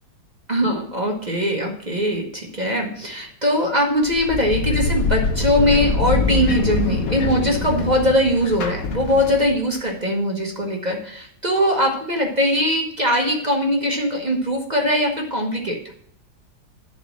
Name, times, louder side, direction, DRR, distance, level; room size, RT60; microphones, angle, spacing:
voice 1, 0.5-15.8, equal, 30° right, 1 dB, 0.9 m, -21 dB
sound 1, 4.1-9.7, left 4 dB, 55° left, 1.2 m, -24 dB
11.0 x 4.2 x 7.1 m, 0.67 s
omnidirectional pair, 2.2 m